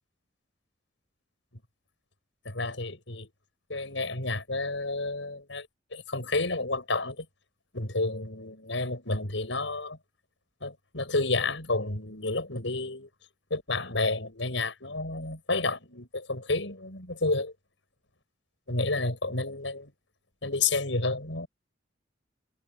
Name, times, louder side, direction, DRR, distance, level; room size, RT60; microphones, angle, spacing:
voice 1, 2.4-3.3 3.7-7.3 7.7-10.0 10.6-13.1 13.5-17.5 18.7-19.9 20.4-21.5, left 3 dB, 80° left, 6.6 m, -30 dB
head